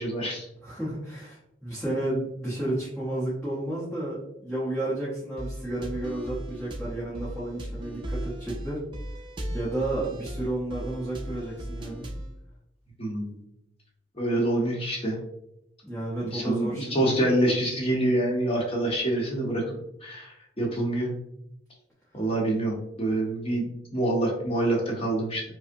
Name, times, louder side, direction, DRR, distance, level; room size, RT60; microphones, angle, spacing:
voice 1, 0.0-0.5 13.0-13.4 14.2-15.2 16.2-21.1 22.1-25.4, right 1 dB, 30° left, -2 dB, 0.9 m, -26 dB
voice 2, 0.6-8.8 9.5-12.1 15.8-17.2, right 1 dB, ahead, -10 dB, 0.8 m, -32 dB
sound 1, 5.4-12.3, equal, 25° right, 0.4 m, -37 dB
5.0 x 2.1 x 2.6 m, 0.83 s
head